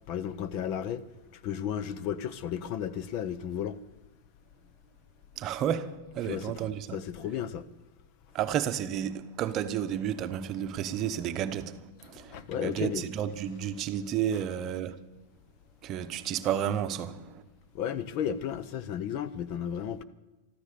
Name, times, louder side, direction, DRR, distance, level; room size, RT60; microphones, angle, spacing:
voice 1, 0.1-1.0 1.4-3.8 6.2-7.7 12.1-13.1 17.7-20.0, left 9 dB, 40° left, 0.8 m, -34 dB
voice 2, 5.4-7.0 8.3-15.0 15.8-17.4, right 9 dB, 30° right, 0.9 m, -32 dB
13.5 x 13.5 x 6.8 m
supercardioid pair, 150°, 0 cm